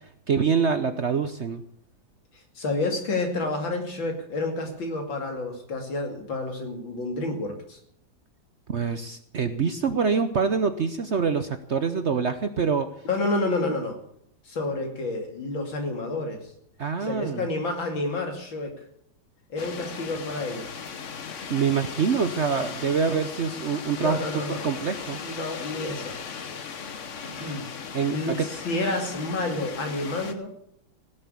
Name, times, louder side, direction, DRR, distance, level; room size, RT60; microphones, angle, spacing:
voice 1, 0.3-1.6 8.7-12.9 16.8-17.5 21.5-25.2 27.9-28.5, right 6 dB, 55° right, 10 dB, 0.8 m, -25 dB
voice 2, 2.5-7.8 13.0-13.9 14.4-16.4 17.0-18.8 19.5-20.7 23.9-24.7 25.2-26.2 27.2-27.7 28.1-30.5, left 2 dB, 85° left, 3 dB, 3.4 m, -29 dB
sound 1, 19.6-30.3, left 6 dB, 45° left, 1.2 m, -37 dB
17.0 x 7.8 x 8.4 m, 0.70 s
omnidirectional pair, 2.1 m